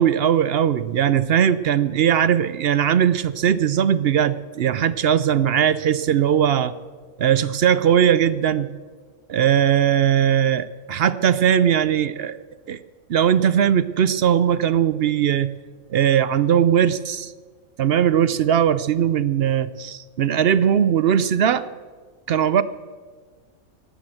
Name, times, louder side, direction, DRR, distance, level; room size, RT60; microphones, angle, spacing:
voice 1, 0.0-6.7 7.2-8.7 9.3-12.8 13.1-15.5 15.9-17.3 17.8-21.7 22.3-22.6, right 9 dB, 60° right, 15 dB, 0.7 m, -19 dB
16.5 x 11.5 x 7.7 m, 1.5 s
omnidirectional pair, 1.5 m